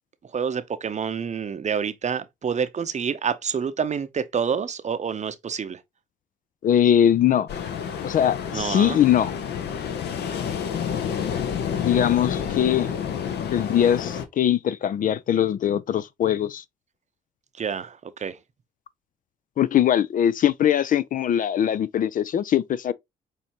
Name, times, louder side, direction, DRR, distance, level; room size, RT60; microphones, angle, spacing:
voice 1, 0.3-5.8 8.5-9.0 17.6-18.4, right 6 dB, 35° right, 0.7 m, -28 dB
voice 2, 6.6-7.5 8.0-9.3 11.8-12.9 13.5-16.6 19.6-22.9, left 10 dB, 45° left, 0.4 m, -21 dB
Ocean, 7.5-14.3, left 8 dB, 60° left, 0.8 m, -29 dB
6.3 x 2.7 x 2.9 m
hypercardioid pair, 50°, 19 cm